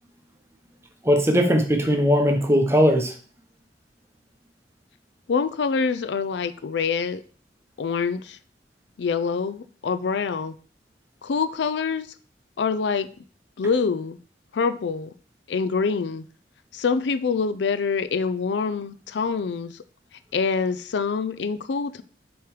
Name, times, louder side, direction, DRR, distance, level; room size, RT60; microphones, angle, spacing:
voice 1, 1.0-3.1, equal, 15° right, 0.9 m, -19 dB
voice 2, 5.3-7.2 7.8-8.4 9.0-10.5 11.2-12.1 12.6-13.1 13.6-14.2 14.5-15.1 15.5-16.2 16.7-19.7 20.3-22.0, left 5 dB, 80° left, 0.4 m, -25 dB
6.8 x 3.1 x 4.8 m
head